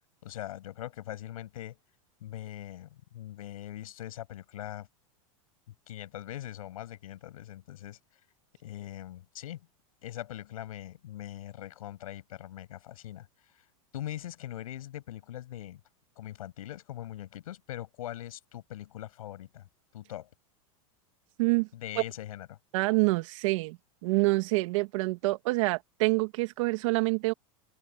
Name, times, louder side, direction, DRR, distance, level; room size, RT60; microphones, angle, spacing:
voice 1, 0.2-1.8 2.2-4.9 5.9-8.0 8.6-9.7 10.0-13.3 13.5-13.7 13.9-15.8 16.2-19.7 19.9-20.3 21.7-22.6, left 13 dB, 90° left, 7.8 m, -41 dB
voice 2, 22.7-23.8 24.0-27.3, right 24 dB, 65° right, 2.3 m, -26 dB
supercardioid pair, 145°, 18 cm